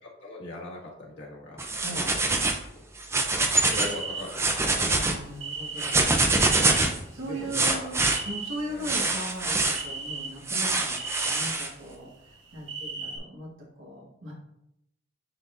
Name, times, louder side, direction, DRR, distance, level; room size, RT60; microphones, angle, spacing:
voice 1, 0.0-1.6 2.0-2.1 2.7-2.8 3.7-4.9 7.2-7.9 8.7-9.0, left 2 dB, 60° left, -4 dB, 1.9 m, -40 dB
sound 1, 1.6-2.6 3.0-3.9 4.3-5.1 5.8-7.0 7.5-8.2 8.8-9.8 10.5-11.7, right 2 dB, 15° right, 0.5 m, -24 dB
voice 2, 1.8-2.2 5.0-6.0 7.1-8.0 8.3-13.5 13.8-14.3, right 1 dB, 80° right, -3 dB, 1.8 m, -38 dB
sound 2, 3.7-4.5 5.4-6.8 7.2-8.5 9.2-9.4 9.7-10.5 11.0-11.5 12.2-13.2, right 4 dB, 60° right, 2.0 m, -36 dB
10.0 x 4.2 x 2.6 m, 0.81 s
head